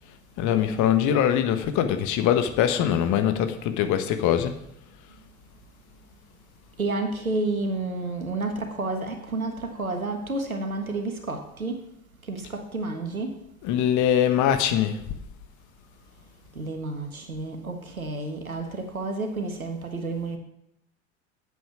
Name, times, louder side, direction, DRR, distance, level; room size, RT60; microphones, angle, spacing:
voice 1, 0.4-4.5 13.6-15.0, left 9 dB, 45° left, 8 dB, 1.4 m, -22 dB
voice 2, 6.8-11.8 12.3-13.3 16.5-20.4, right 2 dB, 90° right, 5 dB, 1.5 m, -30 dB
8.6 x 7.7 x 7.2 m, 0.80 s
figure-of-eight pair, 75°, 41 cm